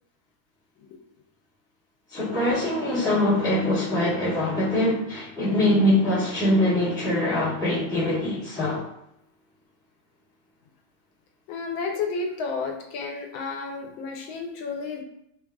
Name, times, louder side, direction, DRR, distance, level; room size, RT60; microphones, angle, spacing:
voice 1, 2.1-8.9, left 1 dB, 5° left, -11 dB, 0.4 m, -23 dB
voice 2, 11.5-15.0, left 4 dB, 75° left, 2 dB, 1.3 m, -31 dB
3.4 x 2.3 x 2.2 m, 0.79 s
omnidirectional pair, 2.2 m